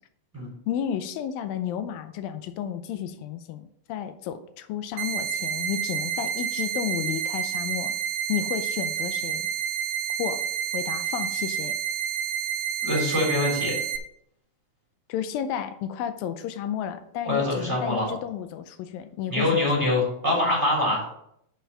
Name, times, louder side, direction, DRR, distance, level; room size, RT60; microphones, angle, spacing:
voice 1, 0.7-7.9 8.3-9.5 10.2-10.4 10.7-11.8 15.1-19.9, left 9 dB, 90° left, 10 dB, 2.4 m, -32 dB
sound 1, 5.0-14.0, right 9 dB, 75° right, 2.1 m, -29 dB
voice 2, 12.8-13.7 17.2-18.1 19.3-21.1, left 1 dB, 5° right, -5 dB, 3.2 m, -24 dB
7.2 x 5.8 x 5.6 m, 0.73 s
omnidirectional pair, 4.1 m